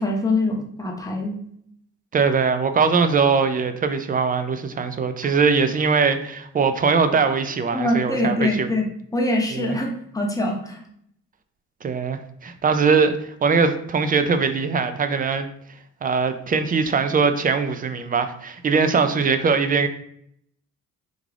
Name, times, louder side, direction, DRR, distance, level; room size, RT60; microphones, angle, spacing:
voice 1, 0.0-1.4 7.7-8.9 9.1-10.8, left 1 dB, 10° left, 0 dB, 0.8 m, -24 dB
voice 2, 2.1-8.7 9.5-9.8 11.8-15.5 16.0-19.9, right 5 dB, 30° right, 9 dB, 0.4 m, -21 dB
3.6 x 2.4 x 3.3 m, 0.69 s
cardioid pair, 90°, 30 cm